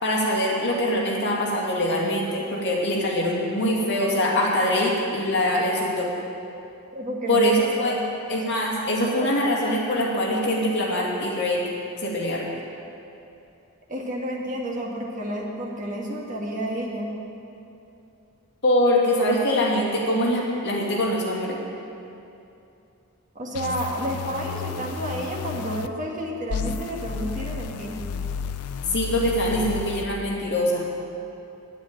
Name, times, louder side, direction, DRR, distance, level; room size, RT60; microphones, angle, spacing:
voice 1, 0.0-6.1 7.3-8.0 8.3-11.6 12.0-12.5 18.6-21.6 28.9-30.8, left 1 dB, 50° left, -4 dB, 2.5 m, -23 dB
voice 2, 6.9-7.5 7.8-8.0 9.0-9.3 13.9-17.1 23.4-28.0, equal, 35° right, -2 dB, 1.8 m, -30 dB
sound 1, 23.5-25.9 26.5-30.0, left 6 dB, 85° left, 0.5 m, -32 dB
9.1 x 8.8 x 9.8 m, 2.7 s
head